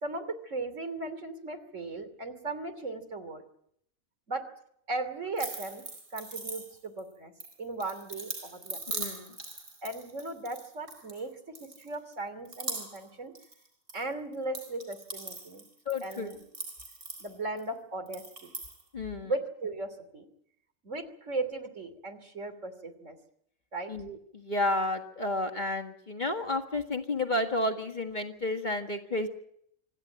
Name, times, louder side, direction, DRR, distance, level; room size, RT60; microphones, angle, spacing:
voice 1, 0.0-3.4 4.3-4.4 4.9-5.8 6.1-7.3 7.6-8.8 9.8-13.3 13.9-15.6 16.0-16.4 17.2-18.5 19.2-20.2 20.8-23.2 23.7-23.9, right 2 dB, 60° right, 10 dB, 3.3 m, -37 dB
sound 1, 5.4-7.0 7.4-11.2 11.5-12.1 12.4-13.1 13.3-14.0 14.3-17.6 18.1-18.8, right 2 dB, 75° right, 4.6 m, -41 dB
voice 2, 8.9-9.4 15.9-16.3 18.9-19.3 23.9-29.3, left 2 dB, 35° left, 5 dB, 1.9 m, -31 dB
26.5 x 14.0 x 9.1 m, 0.71 s
omnidirectional pair, 1.5 m